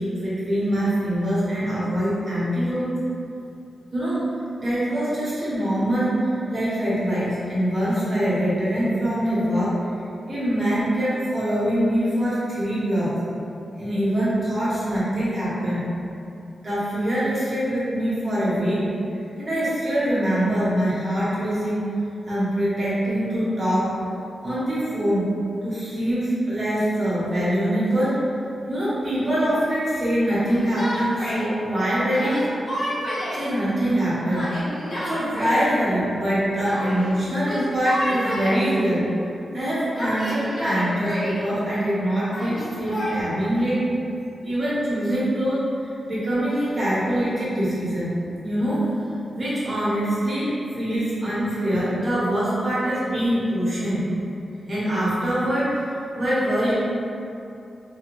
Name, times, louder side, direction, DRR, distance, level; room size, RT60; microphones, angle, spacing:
voice 1, 0.0-2.9 3.9-4.2 4.6-9.8 10.3-13.1 13.8-15.8 16.6-18.9 19.4-21.8 22.3-23.9 24.4-25.3 25.6-28.2 28.7-32.4 33.3-34.5 35.0-39.0 39.5-43.9 44.4-48.1 48.4-48.9 49.3-54.1 54.7-55.8 56.2-56.7, equal, 25° right, -10 dB, 0.8 m, -24 dB
Yell, 30.5-31.4 32.1-33.5 34.3-35.6 36.6-37.1 37.4-38.7 40.0-41.4 42.3-43.2, equal, 30° left, 0.6 m, -30 dB
2.5 x 2.3 x 2.9 m, 2.7 s
wide cardioid pair, 180°, 0 cm